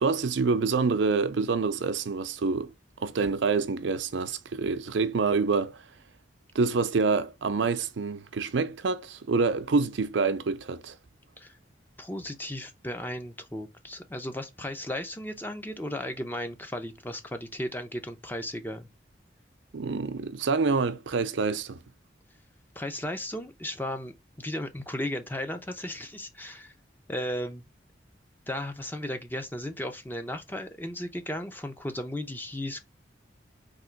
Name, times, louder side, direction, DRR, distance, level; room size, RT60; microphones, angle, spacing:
voice 1, 0.0-2.7 3.0-5.8 6.5-11.0 19.7-21.8, right 4 dB, 85° right, 0.5 m, -27 dB
voice 2, 12.0-18.9 22.8-26.7 27.1-27.6 28.5-32.8, left 1 dB, 10° left, 0.5 m, -35 dB
3.6 x 2.9 x 4.4 m
head